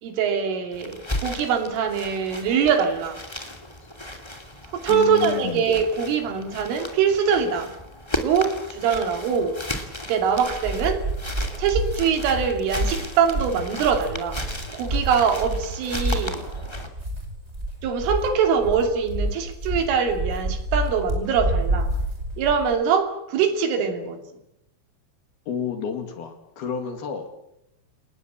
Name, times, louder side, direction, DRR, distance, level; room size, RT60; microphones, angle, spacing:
voice 1, 0.0-3.2 4.7-7.7 8.2-9.6 10.1-11.0 11.6-14.4 14.7-16.5 17.8-21.9 22.4-24.2, right 6 dB, 80° right, 6 dB, 5.3 m, -23 dB
sound 1, 0.7-16.9, left 1 dB, 35° left, 0.4 m, -35 dB
voice 2, 4.9-5.7 25.5-27.4, left 7 dB, 60° left, 6 dB, 3.9 m, -31 dB
sound 2, 10.4-22.7, right 1 dB, 15° right, 5.1 m, -29 dB
29.0 x 19.5 x 7.6 m, 0.82 s
omnidirectional pair, 5.6 m